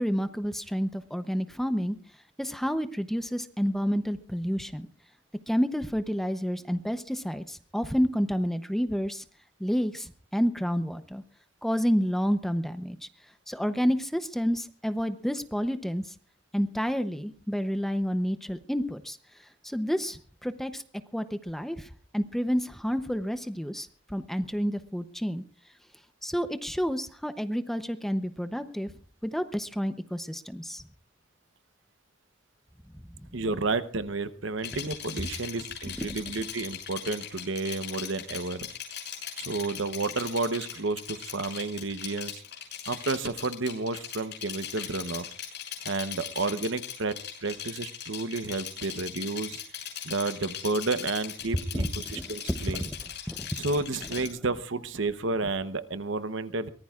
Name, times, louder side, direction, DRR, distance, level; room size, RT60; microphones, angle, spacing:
voice 1, 0.0-2.0 2.4-4.9 5.5-9.2 9.6-11.2 11.6-13.0 13.5-16.1 16.5-19.2 19.6-20.8 21.1-25.4 26.2-28.9 29.2-30.8 32.9-33.0 36.0-36.1 51.5-52.9 53.3-53.5, equal, ahead, 9 dB, 0.7 m, -29 dB
voice 2, 33.3-38.7 39.4-42.4 42.9-45.3 45.8-47.2 47.4-49.6 50.0-52.9 53.6-56.7, right 3 dB, 75° right, 11 dB, 0.9 m, -31 dB
Rattle, 34.6-54.3, left 9 dB, 60° left, 6.5 m, -39 dB
23.0 x 19.0 x 2.4 m, 0.43 s
head